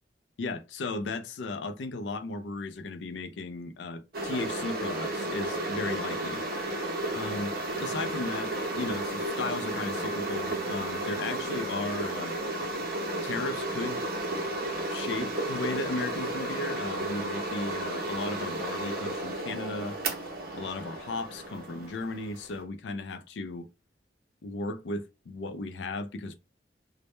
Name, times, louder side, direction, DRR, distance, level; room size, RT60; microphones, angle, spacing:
voice 1, 0.4-6.4 7.1-12.4 13.2-14.0 14.9-20.0 20.5-23.7 24.4-26.4, left 3 dB, 85° left, 0.4 m, -35 dB
sound 1, 4.1-22.6, right 2 dB, 60° right, 0.6 m, -33 dB
2.1 x 2.0 x 2.9 m
head